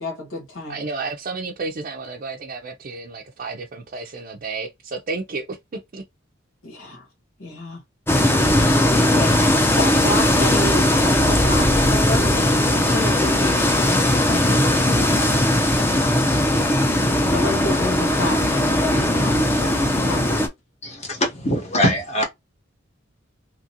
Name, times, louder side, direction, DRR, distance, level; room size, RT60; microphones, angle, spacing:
voice 1, 0.0-0.8 6.6-7.0 7.4-7.8 8.9-9.4 9.7-15.5 17.3-19.8 20.0-20.4, left 2 dB, 85° left, 1.4 m, -30 dB
voice 2, 0.7-5.6 5.9-6.0, right 3 dB, 45° right, 0.5 m, -31 dB
sound 1, 8.1-20.5, left 1 dB, 10° left, 0.5 m, -18 dB
voice 3, 20.8-22.2, equal, 35° left, 0.8 m, -22 dB
2.9 x 2.5 x 2.7 m
head